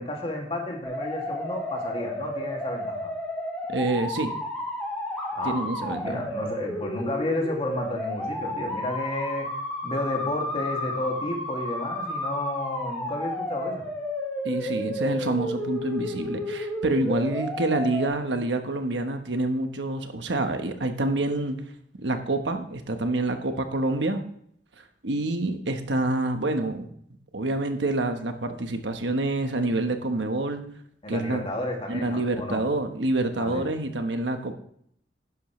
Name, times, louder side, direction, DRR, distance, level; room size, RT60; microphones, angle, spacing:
voice 1, 0.0-3.1 5.3-9.5 9.8-13.9 31.0-32.6 33.4-33.6, left 1 dB, 35° left, 0 dB, 2.4 m, -32 dB
sound 1, 0.8-18.1, left 1 dB, 5° left, 4.2 m, -32 dB
voice 2, 3.7-4.3 5.4-6.2 14.4-21.6 22.0-24.2 25.0-26.9 27.3-30.6 31.1-31.4 31.9-34.5, right 2 dB, 85° right, 6 dB, 1.2 m, -27 dB
11.0 x 10.5 x 3.2 m, 0.68 s
head